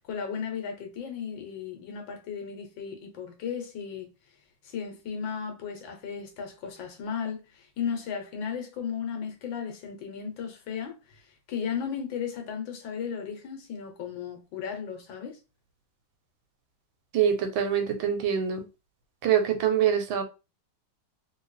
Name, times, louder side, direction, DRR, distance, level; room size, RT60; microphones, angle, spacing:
voice 1, 0.0-4.1 4.6-11.2 11.5-15.4, left 7 dB, 75° left, 1.6 m, -35 dB
voice 2, 17.1-18.7 19.2-20.2, right 8 dB, 85° right, 1.6 m, -24 dB
3.2 x 2.9 x 3.2 m
omnidirectional pair, 2.1 m